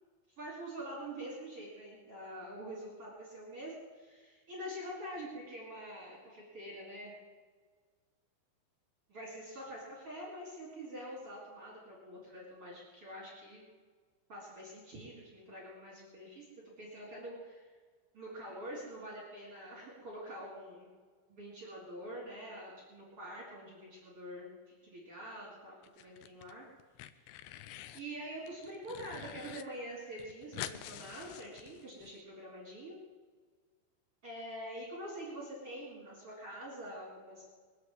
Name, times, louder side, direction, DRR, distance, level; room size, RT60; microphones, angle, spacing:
voice 1, 0.4-7.1 9.1-13.7 14.3-16.4 16.8-17.6 18.1-20.9 21.3-26.7 27.1-27.3 27.9-33.0 34.2-37.4, right 1 dB, 30° right, -5 dB, 4.3 m, -45 dB
sound 1, 25.8-26.5 26.8-28.1 28.5-29.6 29.9-30.0 30.2-32.1, left 12 dB, 80° left, 2.8 m, -46 dB
22.5 x 8.2 x 7.8 m, 1.5 s
omnidirectional pair, 5.5 m